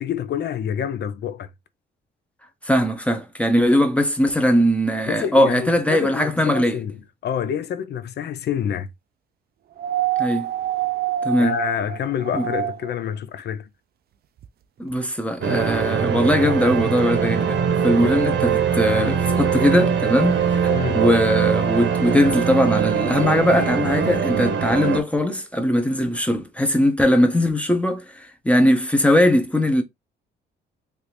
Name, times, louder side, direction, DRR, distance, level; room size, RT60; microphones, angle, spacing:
voice 1, 0.0-1.5 5.1-7.0 7.2-8.9 11.4-13.7 18.0-18.2 20.7-21.1, left 9 dB, 55° left, 0.5 m, -27 dB
voice 2, 2.6-6.8 10.2-10.5 11.2-11.5 12.3-12.5 14.8-29.8, equal, 5° left, 0.7 m, -20 dB
sound 1, 9.8-13.0 14.4-14.5, right 11 dB, 50° right, 0.4 m, -26 dB
sound 2, 15.4-25.0, right 7 dB, 65° right, 0.9 m, -22 dB
3.3 x 2.6 x 2.9 m
cardioid pair, 90°, 20 cm